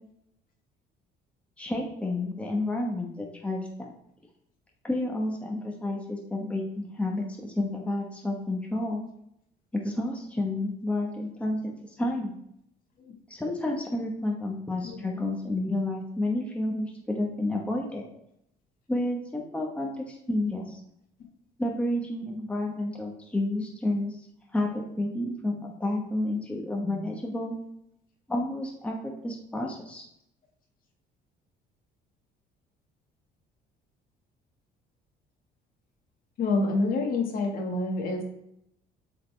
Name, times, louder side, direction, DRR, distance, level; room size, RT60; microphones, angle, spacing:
voice 1, 1.6-3.9 4.8-9.0 9.7-12.3 13.3-18.0 18.9-20.8 21.6-24.2 24.5-27.6 28.3-29.0 29.2-30.0, left 1 dB, 5° left, 0 dB, 1.1 m, -30 dB
voice 2, 36.4-38.2, left 3 dB, 60° left, 1 dB, 1.6 m, -27 dB
7.9 x 4.1 x 3.3 m, 0.76 s
cardioid pair, 110°, 17 cm